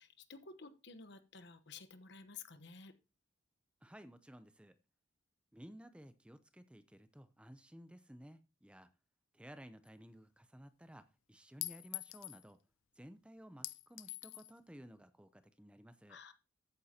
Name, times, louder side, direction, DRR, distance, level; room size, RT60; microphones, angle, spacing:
voice 1, 0.0-2.9 16.1-16.3, left 5 dB, 60° left, 11 dB, 1.1 m, -53 dB
voice 2, 3.8-4.8 5.5-8.9 9.3-12.6 13.0-16.2, equal, 5° right, 11 dB, 0.6 m, -56 dB
Chink clink, 9.9-10.0 11.6-12.4 13.6-14.5, left 18 dB, 90° left, 0.5 m, -44 dB
13.5 x 9.1 x 2.9 m, 0.29 s
head